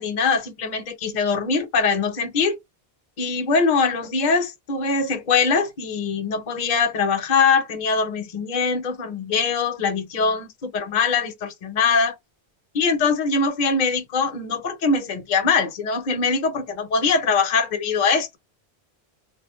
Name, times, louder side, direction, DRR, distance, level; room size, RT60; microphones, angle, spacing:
voice 1, 0.0-2.6 3.2-12.1 12.7-18.4, left 5 dB, 50° left, 0.8 m, -22 dB
2.4 x 2.1 x 2.9 m
omnidirectional pair, 1.1 m